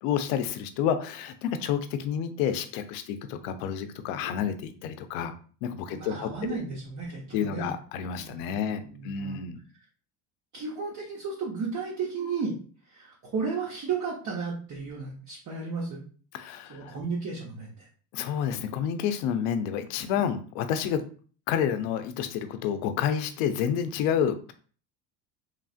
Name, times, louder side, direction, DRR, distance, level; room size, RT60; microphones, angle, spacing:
voice 1, 0.0-5.3 5.6-6.6 7.3-9.6 16.3-17.0 18.1-21.0 21.5-24.5, left 8 dB, 80° left, 9 dB, 0.6 m, -29 dB
voice 2, 5.9-7.7 8.2-9.5 10.5-12.5 12.8-16.0 16.7-17.9, right 5 dB, 40° right, -3 dB, 0.9 m, -34 dB
3.2 x 2.4 x 2.4 m, 0.41 s
supercardioid pair, 90°, 48 cm